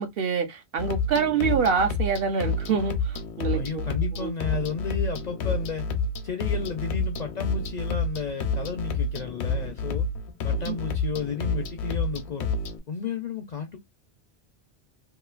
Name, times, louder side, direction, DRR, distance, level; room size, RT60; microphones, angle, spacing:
voice 1, 0.0-3.8 4.2-4.3 10.7-10.8, right 6 dB, 65° right, 0.8 m, -26 dB
sound 1, 0.8-12.8, left 3 dB, 80° left, 0.9 m, -29 dB
voice 2, 3.5-5.9 6.2-10.1 10.4-12.5 12.9-13.8, left 5 dB, 55° left, 0.5 m, -33 dB
2.9 x 2.4 x 2.3 m
omnidirectional pair, 1.1 m